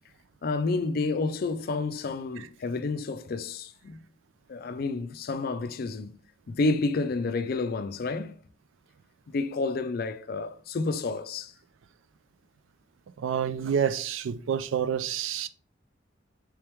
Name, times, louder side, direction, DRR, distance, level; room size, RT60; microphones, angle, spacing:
voice 1, 0.4-4.0 4.5-6.1 6.5-8.4 9.3-11.5, left 3 dB, 50° left, 0.4 m, -30 dB
voice 2, 13.2-15.5, right 8 dB, 90° right, 0.4 m, -28 dB
3.4 x 3.1 x 3.4 m
head